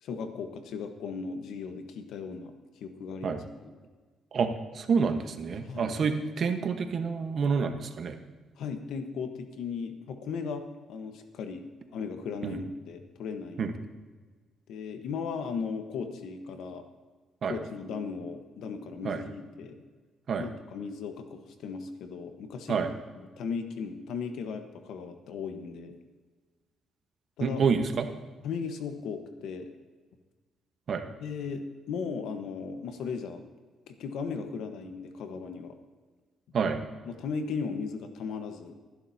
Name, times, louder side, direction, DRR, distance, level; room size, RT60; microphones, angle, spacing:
voice 1, 0.0-2.5 2.8-3.7 5.6-6.0 8.6-11.6 11.9-13.7 14.7-16.8 17.5-19.8 20.4-22.8 23.4-26.0 27.4-27.6 28.4-29.7 31.2-33.4 33.9-35.8 37.0-38.8, left 5 dB, 80° left, 6 dB, 1.3 m, -37 dB
voice 2, 4.3-8.2 12.4-12.6 13.6-13.7 17.4-17.5 19.0-19.2 20.3-20.5 22.7-22.9 27.4-28.1 30.9-31.0 36.5-36.8, right 5 dB, 55° right, 6 dB, 1.2 m, -28 dB
19.5 x 11.0 x 2.8 m, 1.4 s
cardioid pair, 90°, 0 cm